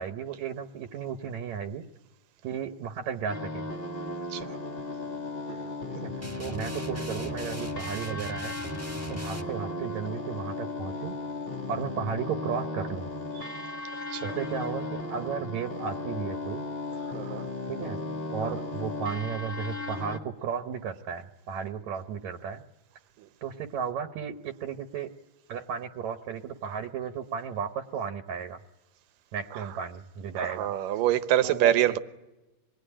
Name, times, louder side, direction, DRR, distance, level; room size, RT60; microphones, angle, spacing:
voice 1, 0.0-1.8 2.4-3.7 5.9-8.6 9.1-11.2 11.7-13.1 14.2-16.6 17.7-18.0 18.3-22.6 23.4-25.1 25.5-28.6 29.3-30.7 31.4-32.0, right 7 dB, 65° right, 2.2 m, -34 dB
sound 1, 3.3-20.2, left 2 dB, 25° left, 1.4 m, -36 dB
sound 2, 6.2-9.4, right 1 dB, 20° right, 0.4 m, -40 dB
voice 2, 17.1-17.5 18.5-18.6 23.2-23.3 30.4-32.0, right 12 dB, 80° right, 2.7 m, -26 dB
26.0 x 21.5 x 10.0 m
omnidirectional pair, 3.8 m